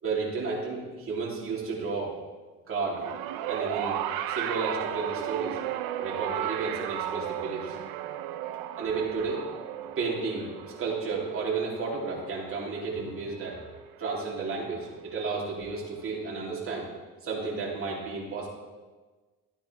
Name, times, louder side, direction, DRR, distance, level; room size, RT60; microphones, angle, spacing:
voice 1, 0.0-2.1 2.7-3.0 3.4-4.0 4.3-5.6 6.0-7.8 8.8-9.4 10.0-13.6 14.0-16.9 17.2-18.5, right 4 dB, 35° right, -4 dB, 3.4 m, -32 dB
sound 1, 2.9-13.4 14.4-14.5, right 11 dB, 75° right, 0.8 m, -35 dB
13.0 x 9.4 x 3.5 m, 1.3 s
cardioid pair, 110°, 36 cm